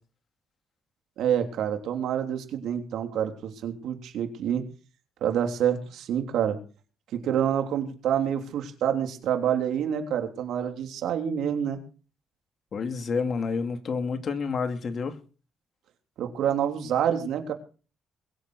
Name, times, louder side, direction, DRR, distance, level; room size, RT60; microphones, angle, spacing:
voice 1, 1.2-4.6 5.2-6.6 7.1-11.8 16.2-17.5, right 9 dB, 80° right, 3.3 m, -27 dB
voice 2, 12.7-15.2, left 5 dB, 50° left, 2.5 m, -29 dB
22.5 x 7.8 x 6.3 m
cardioid pair, 90°, 0 cm